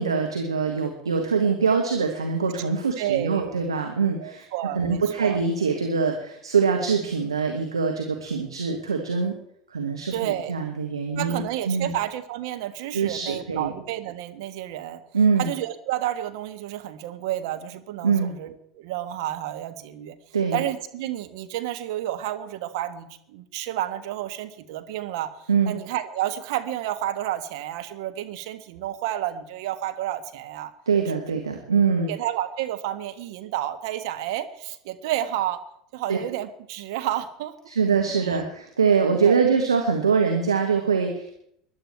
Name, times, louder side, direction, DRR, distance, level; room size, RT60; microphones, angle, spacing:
voice 1, 0.0-4.5 4.7-9.3 9.7-11.9 12.9-13.7 15.1-15.5 18.0-18.3 20.3-20.6 25.5-25.7 30.9-32.1 36.1-36.2 37.7-41.4, right 5 dB, 80° right, 3 dB, 1.6 m, -23 dB
voice 2, 3.0-3.6 4.2-5.4 10.1-10.5 11.2-15.0 15.4-20.2 20.5-30.7 31.1-31.4 32.1-35.6 35.9-37.5 38.2-38.4 39.1-39.4, right 13 dB, 60° right, 8 dB, 1.4 m, -30 dB
21.0 x 11.0 x 4.5 m, 0.71 s
figure-of-eight pair, 75°, 3 cm